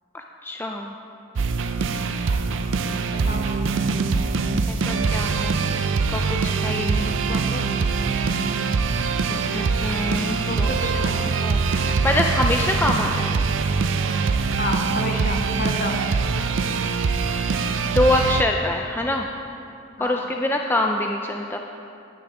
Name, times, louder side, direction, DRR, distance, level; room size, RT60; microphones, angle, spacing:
voice 1, 0.1-0.9 4.7-5.8 6.1-7.1 9.3-13.5 17.8-19.3 20.0-21.6, left 2 dB, 10° left, 2 dB, 0.3 m, -25 dB
sound 1, 1.4-18.4, right 4 dB, 75° right, 0.4 m, -23 dB
voice 2, 3.1-3.4 7.3-7.7 10.5-11.3 14.6-16.0 20.0-20.2, left 1 dB, 50° left, 2 dB, 1.0 m, -30 dB
17.5 x 6.0 x 3.7 m, 2.6 s
head